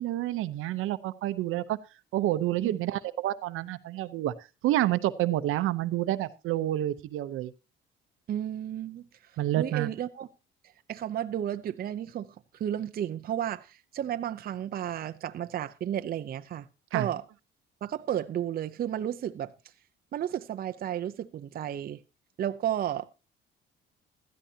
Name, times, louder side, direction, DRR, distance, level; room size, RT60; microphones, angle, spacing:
voice 1, 0.0-1.8 2.1-4.3 4.6-7.5 9.4-9.9 16.9-17.1, right 14 dB, 75° right, 0.8 m, -28 dB
voice 2, 8.3-9.0 9.6-10.3 10.9-12.3 12.5-16.7 16.9-17.2 17.8-19.5 20.1-22.0 22.4-23.1, right 10 dB, 45° right, 0.6 m, -32 dB
16.0 x 13.0 x 2.8 m
cardioid pair, 115°, 21 cm